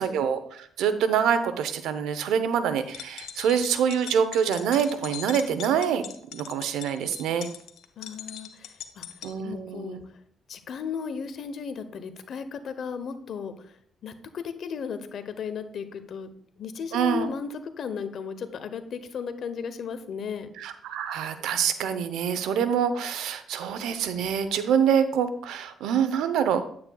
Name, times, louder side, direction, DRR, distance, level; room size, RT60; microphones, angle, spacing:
voice 1, 0.0-6.0 6.3-7.5 9.2-10.0 16.9-17.3 20.6-26.6, right 8 dB, 85° right, 11 dB, 0.7 m, -25 dB
sound 1, 2.8-9.3, left 10 dB, 85° left, 0.7 m, -41 dB
voice 2, 8.0-9.0 9.4-10.2 10.5-16.3 16.6-20.5, left 6 dB, 60° left, 10 dB, 0.9 m, -35 dB
9.4 x 8.6 x 2.3 m, 0.64 s
cardioid pair, 90°, 0 cm